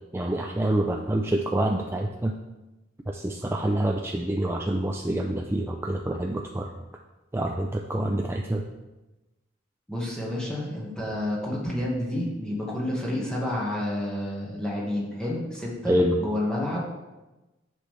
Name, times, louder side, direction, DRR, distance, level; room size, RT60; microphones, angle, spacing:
voice 1, 0.1-2.4 3.1-6.7 7.3-8.6 15.9-16.2, right 1 dB, 10° right, 1 dB, 0.4 m, -26 dB
voice 2, 9.9-16.8, left 1 dB, 5° left, -5 dB, 1.5 m, -30 dB
10.0 x 6.1 x 3.3 m, 1.1 s
head